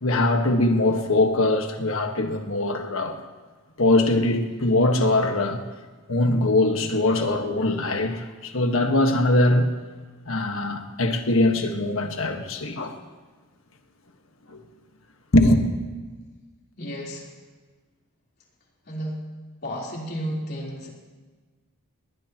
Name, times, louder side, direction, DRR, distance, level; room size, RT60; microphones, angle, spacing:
voice 1, 0.0-3.2 3.8-5.6 6.1-9.7 10.3-13.0 14.5-14.6 15.3-15.7, left 2 dB, 70° left, 5 dB, 1.5 m, -22 dB
voice 2, 16.8-17.3 18.8-19.2 19.6-20.9, equal, 50° left, -3 dB, 3.8 m, -32 dB
20.5 x 19.0 x 3.0 m, 1.4 s
head